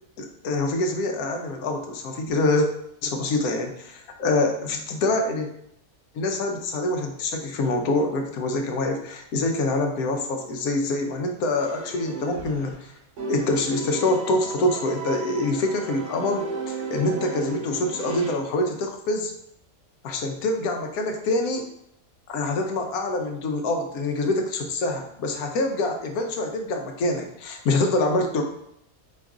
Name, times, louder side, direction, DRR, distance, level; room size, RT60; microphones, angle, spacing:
voice 1, 0.2-2.7 3.0-5.5 6.1-12.7 13.3-19.3 20.0-21.6 22.3-28.4, left 2 dB, 80° left, 4 dB, 1.1 m, -25 dB
sound 1, 11.6-12.8 13.2-18.3, right 4 dB, 80° right, 2.3 m, -35 dB
4.6 x 2.4 x 3.5 m, 0.74 s
omnidirectional pair, 1.5 m